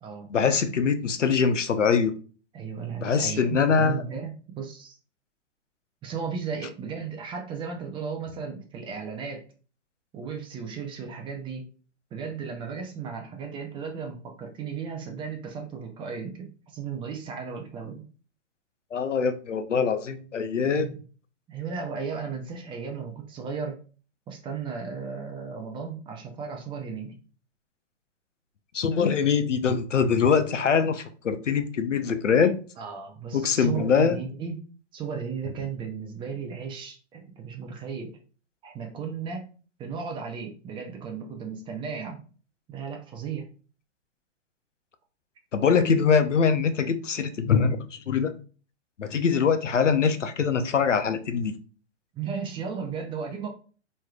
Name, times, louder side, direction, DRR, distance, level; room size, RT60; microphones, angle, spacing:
voice 1, 0.3-2.1 3.0-4.0 18.9-20.9 28.7-32.6 33.3-34.2 45.5-48.3 49.0-51.5, left 6 dB, 90° left, 0.7 m, -23 dB
voice 2, 2.5-5.0 6.0-9.4 10.1-11.7 12.1-18.0 20.6-21.0 21.5-23.8 24.3-27.2 32.8-34.6 34.9-38.2 38.6-39.4 39.8-42.2 42.7-43.5 52.1-53.5, right 6 dB, 15° right, 0.5 m, -35 dB
4.3 x 3.2 x 2.4 m
hypercardioid pair, 120°, 36 cm